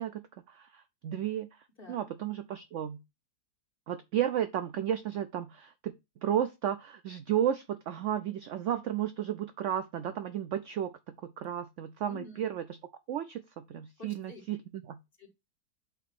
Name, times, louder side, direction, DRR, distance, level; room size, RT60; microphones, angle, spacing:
voice 1, 0.0-3.0 3.9-5.9 6.2-12.8 13.1-15.0, right 10 dB, 70° right, 0.7 m, -33 dB
voice 2, 12.0-12.5 14.0-14.4 15.2-15.3, left 4 dB, 35° left, 1.9 m, -48 dB
7.8 x 2.8 x 5.9 m
omnidirectional pair, 1.7 m